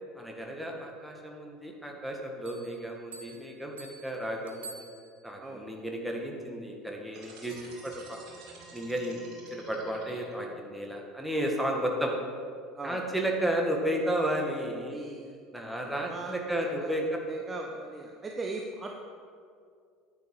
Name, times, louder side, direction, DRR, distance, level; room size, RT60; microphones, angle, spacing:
voice 1, 0.1-4.8 5.2-7.5 7.8-8.2 8.7-12.1 12.8-15.0 15.5-17.0 17.4-17.5, right 1 dB, 5° right, 0 dB, 1.8 m, -33 dB
sound 1, 2.4-5.5, right 3 dB, 75° right, 0.8 m, -49 dB
sound 2, 7.1-10.7, right 3 dB, 50° right, 2.4 m, -50 dB
voice 2, 12.7-13.1 14.9-15.5 15.7-17.0 17.3-18.9, right 3 dB, 25° right, 1 dB, 0.9 m, -40 dB
10.0 x 8.6 x 4.9 m, 2.2 s
figure-of-eight pair, 65°, 0 cm